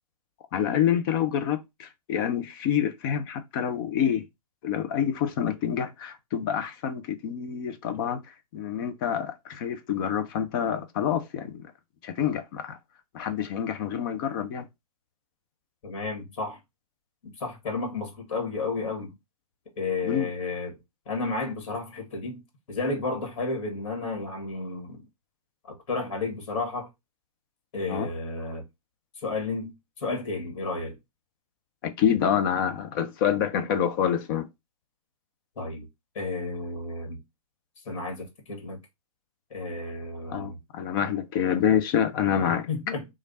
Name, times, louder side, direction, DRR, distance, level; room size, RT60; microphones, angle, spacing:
voice 1, 0.5-4.2 4.6-8.2 8.5-11.7 12.0-12.8 13.1-14.7 20.0-20.3 27.9-28.1 31.8-34.5 40.3-42.7, left 9 dB, 35° left, 0.6 m, -27 dB
voice 2, 15.8-16.6 17.4-19.1 19.8-20.8 21.1-22.4 22.7-25.0 25.7-26.9 27.7-28.6 29.2-31.0 35.6-35.9 36.2-37.2 37.9-38.8 39.5-40.6 42.7-43.1, left 3 dB, 50° left, 1.9 m, -32 dB
3.2 x 2.5 x 4.0 m
hypercardioid pair, 125°, 20 cm